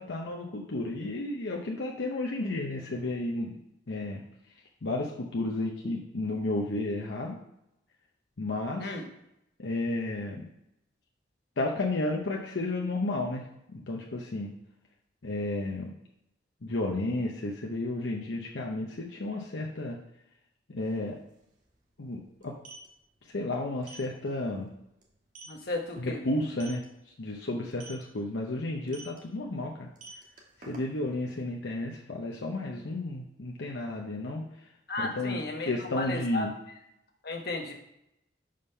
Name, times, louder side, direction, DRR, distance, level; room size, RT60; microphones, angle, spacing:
voice 1, 0.0-3.6 3.9-4.2 4.8-7.4 8.4-8.9 9.6-10.5 11.6-13.4 13.7-14.5 15.2-15.9 16.6-20.0 20.7-21.2 22.0-22.5 23.3-24.7 26.0-26.8 27.2-29.9 30.7-34.5 35.0-36.5, left 2 dB, 75° left, -1 dB, 0.8 m, -32 dB
sound 1, 20.8-20.9 21.2-21.3 22.4-22.9 23.8-24.1 24.5-24.7 25.0-25.1 25.3-25.6 26.5-26.8 27.7-28.0 28.9-29.2 29.8-31.1, right 3 dB, 45° right, 1.4 m, -47 dB
voice 2, 25.5-26.2 34.9-36.5 37.2-37.7, left 2 dB, 55° left, 2 dB, 1.1 m, -34 dB
5.4 x 5.1 x 5.6 m, 0.82 s
head